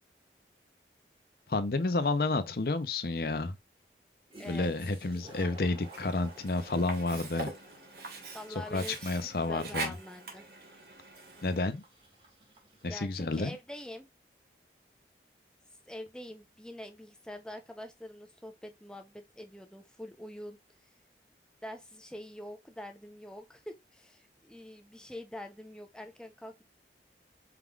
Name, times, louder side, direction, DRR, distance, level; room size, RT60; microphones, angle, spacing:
voice 1, 1.5-3.6 4.5-7.5 8.7-9.9 11.4-11.8 12.8-13.5, left 3 dB, 55° left, 0.6 m, -30 dB
Toilet flush, 4.0-4.1 4.3-13.7, right 1 dB, 30° right, 1.6 m, -55 dB
voice 2, 4.4-4.7 8.3-10.4 12.9-14.1 15.9-20.6 21.6-26.6, left 1 dB, 5° left, 0.6 m, -45 dB
Sink (filling or washing), 5.8-11.8, right 3 dB, 60° right, 1.3 m, -43 dB
4.7 x 3.7 x 2.4 m
head